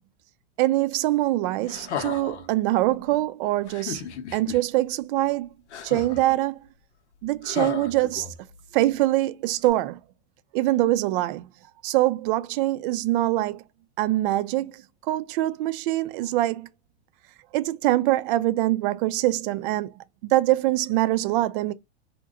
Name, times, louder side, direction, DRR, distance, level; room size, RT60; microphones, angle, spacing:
voice 1, 0.6-5.5 5.8-6.6 7.2-8.3 8.7-10.0 10.5-11.5 11.8-13.6 14.0-14.8 15.1-16.7 17.5-19.9 20.2-21.7, right 16 dB, 50° right, 0.4 m, -24 dB
sound 1, 1.7-2.5 3.7-4.6 5.7-6.3 7.4-8.6 9.6-9.7, left 8 dB, 85° left, 0.8 m, -34 dB
2.8 x 2.2 x 3.6 m
hypercardioid pair, 120°, 33 cm